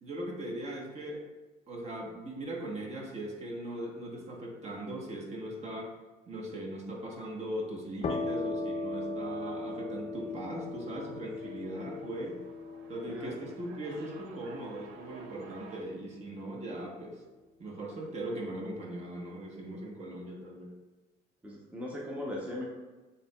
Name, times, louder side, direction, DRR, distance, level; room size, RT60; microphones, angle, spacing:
voice 1, 0.0-1.3 1.7-6.0 6.3-12.4 12.9-17.2 17.6-20.7, right 1 dB, 40° right, -2 dB, 1.0 m, -39 dB
sound 1, 8.0-15.5, left 3 dB, 40° left, 0.6 m, -39 dB
sound 2, 10.2-15.8, right 4 dB, 90° right, 0.5 m, -53 dB
voice 2, 21.4-22.6, left 1 dB, 10° right, -3 dB, 0.7 m, -38 dB
7.0 x 2.8 x 2.2 m, 1.2 s
cardioid pair, 110°, 17 cm